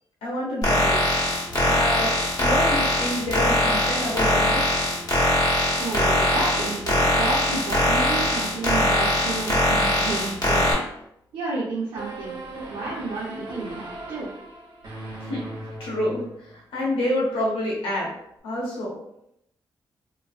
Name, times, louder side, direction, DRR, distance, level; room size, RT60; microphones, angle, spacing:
voice 1, 0.2-1.0 1.6-2.1 2.4-4.6 15.2-15.5 15.8-18.1 18.4-19.0, left 1 dB, 85° left, -4 dB, 1.0 m, -28 dB
sound 1, 0.6-10.7, left 1 dB, 40° left, 1.4 m, -21 dB
voice 2, 5.8-10.7 11.3-12.4 12.7-14.3, right 3 dB, 85° right, -7 dB, 0.7 m, -31 dB
sound 2, 12.0-16.6, right 2 dB, 60° right, 1.3 m, -38 dB
3.0 x 2.6 x 2.4 m, 0.78 s
supercardioid pair, 55°, 9 cm